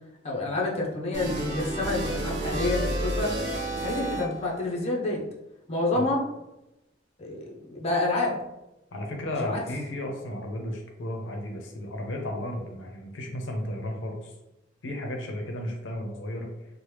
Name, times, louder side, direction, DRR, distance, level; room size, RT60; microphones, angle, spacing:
voice 1, 0.2-3.3 3.8-5.2 5.7-6.2 7.2-8.4 9.4-9.6, left 2 dB, 35° left, -2 dB, 0.5 m, -28 dB
sound 1, 1.1-4.5, right 1 dB, 65° right, 1.0 m, -30 dB
voice 2, 8.9-14.3 14.8-16.5, left 1 dB, 80° left, 2 dB, 0.5 m, -34 dB
2.9 x 2.0 x 3.2 m, 0.93 s
head